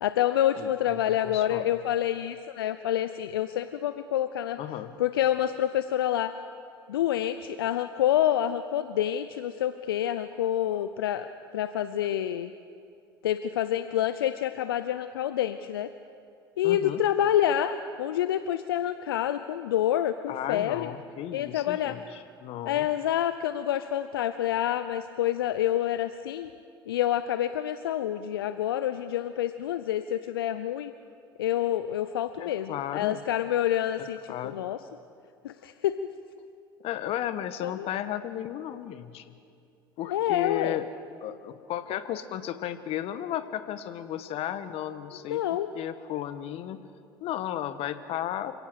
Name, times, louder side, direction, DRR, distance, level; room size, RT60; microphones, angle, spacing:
voice 1, 0.0-4.6 5.0-6.3 6.9-11.3 11.5-12.5 13.2-15.9 16.6-20.9 21.3-22.0 22.7-26.5 26.9-30.9 31.4-34.8 35.4-36.0 37.6-37.9 40.1-40.8 45.3-45.7, left 11 dB, 80° left, 12 dB, 0.6 m, -27 dB
voice 2, 0.5-1.0 1.2-1.8 4.6-4.9 16.6-17.0 20.3-22.9 32.4-33.2 34.0-34.6 36.8-39.3 40.0-40.9 41.2-45.4 45.7-46.8 47.2-48.5, left 11 dB, 55° left, 12 dB, 1.4 m, -34 dB
28.0 x 17.0 x 6.5 m, 2.5 s
hypercardioid pair, 65°, 12 cm